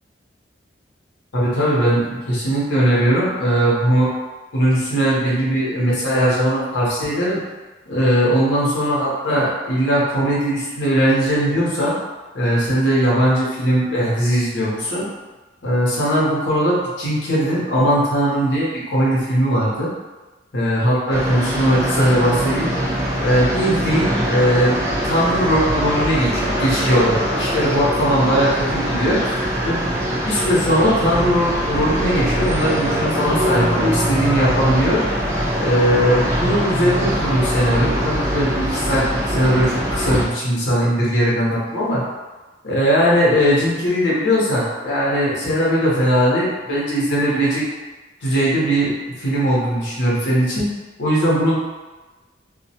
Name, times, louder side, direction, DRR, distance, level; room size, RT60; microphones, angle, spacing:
voice 1, 1.3-4.1 4.5-7.4 7.9-12.0 12.3-15.1 15.6-19.9 20.5-22.8 23.2-24.8 25.0-30.0 30.3-35.0 35.6-42.0 42.6-47.7 48.2-50.7 51.0-51.5, equal, 90° left, -7 dB, 0.8 m, -19 dB
sound 1, 21.1-40.3, equal, 15° right, 0.3 m, -22 dB
2.2 x 2.1 x 2.7 m, 1.2 s
head